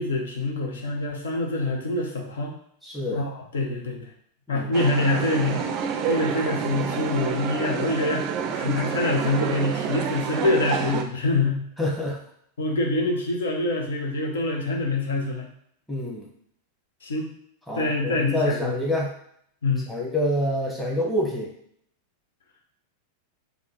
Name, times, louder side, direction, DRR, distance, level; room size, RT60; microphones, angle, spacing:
voice 1, 0.0-2.5 3.1-4.1 4.5-5.6 6.0-11.6 12.6-15.5 17.0-17.3 17.7-18.7 19.6-19.9, left 2 dB, 65° left, 1 dB, 0.8 m, -25 dB
voice 2, 2.8-3.2 4.5-4.7 11.8-12.2 15.9-16.3 17.7-19.1 19.9-21.5, left 1 dB, 5° left, -3 dB, 1.1 m, -27 dB
sound 1, 4.7-11.0, right 6 dB, 40° right, 0.4 m, -28 dB
3.7 x 2.3 x 3.9 m, 0.68 s
figure-of-eight pair, 90°, 0 cm